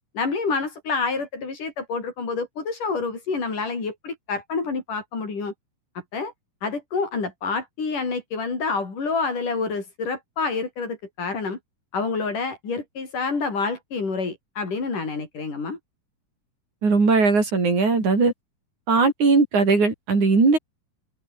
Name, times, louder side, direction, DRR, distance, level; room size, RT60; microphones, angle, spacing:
voice 1, 0.1-5.5 6.1-6.3 6.6-11.6 11.9-15.8, left 4 dB, 65° left, 7.8 m, -28 dB
voice 2, 16.8-18.3 18.9-20.6, right 4 dB, 55° right, 7.8 m, -19 dB
open air
omnidirectional pair, 4.0 m